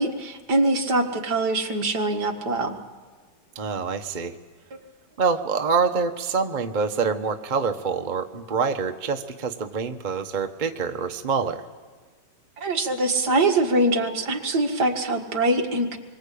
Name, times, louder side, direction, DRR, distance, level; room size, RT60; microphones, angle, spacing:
voice 1, 0.0-2.8 12.6-16.0, right 2 dB, 55° right, 3 dB, 2.3 m, -23 dB
voice 2, 3.5-4.3 5.2-11.6, right 5 dB, 35° right, 6 dB, 0.8 m, -26 dB
27.0 x 23.5 x 8.5 m, 1.4 s
omnidirectional pair, 2.2 m